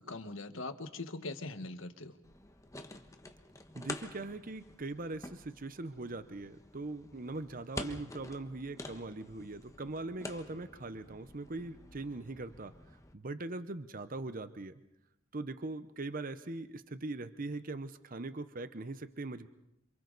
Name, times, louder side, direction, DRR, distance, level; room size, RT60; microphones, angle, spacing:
voice 1, 0.0-2.2, left 2 dB, 70° left, 8 dB, 1.6 m, -41 dB
sound 1, 2.2-13.1, left 2 dB, 15° left, 1.3 m, -48 dB
voice 2, 3.7-12.7 13.1-14.7 15.3-19.5, right 2 dB, 45° right, 12 dB, 0.9 m, -41 dB
29.0 x 27.0 x 4.1 m, 0.81 s
head